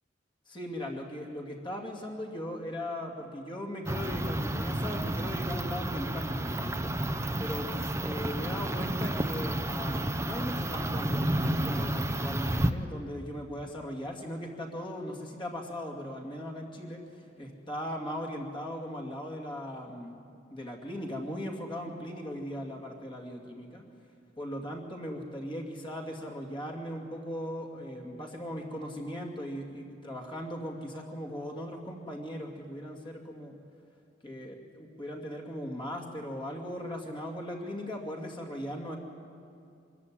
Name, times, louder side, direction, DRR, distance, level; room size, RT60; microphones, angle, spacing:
voice 1, 0.5-6.9 7.4-7.7 8.0-20.2 20.5-23.8 24.4-33.6 34.2-39.0, equal, 25° left, 1 dB, 2.5 m, -38 dB
sound 1, 3.9-12.7, right 1 dB, 15° right, 0.7 m, -31 dB
24.0 x 13.5 x 10.0 m, 2.4 s
head